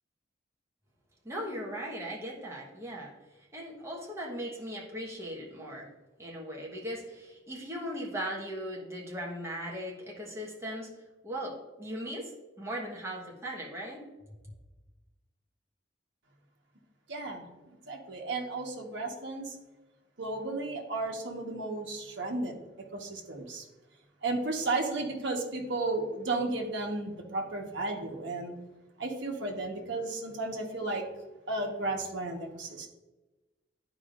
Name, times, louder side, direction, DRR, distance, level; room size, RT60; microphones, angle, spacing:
voice 1, 1.2-3.1 3.5-5.9 6.2-10.9 11.2-12.3 12.6-14.0, equal, 15° right, -3 dB, 1.3 m, -38 dB
voice 2, 17.1-17.5 17.9-19.6 20.2-22.6 22.9-23.6 24.2-28.5 29.0-31.0 31.5-32.9, right 2 dB, 65° right, 1 dB, 1.3 m, -33 dB
12.0 x 5.0 x 2.6 m, 1.1 s
head